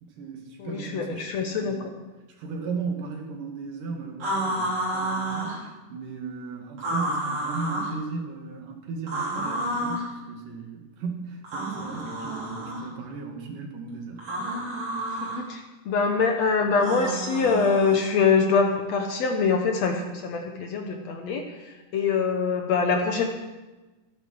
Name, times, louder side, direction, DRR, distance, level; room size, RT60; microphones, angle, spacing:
voice 1, 0.0-1.8 2.4-14.4, right 4 dB, 70° right, 2 dB, 3.3 m, -36 dB
voice 2, 0.6-1.8 15.4-23.2, left 5 dB, 65° left, 3 dB, 2.0 m, -24 dB
sound 1, 4.2-5.6 6.8-7.9 9.1-10.1 11.4-12.9 14.2-15.4 16.8-18.1, right 1 dB, 50° right, 4.9 m, -30 dB
13.5 x 10.0 x 6.4 m, 1.1 s
omnidirectional pair, 3.9 m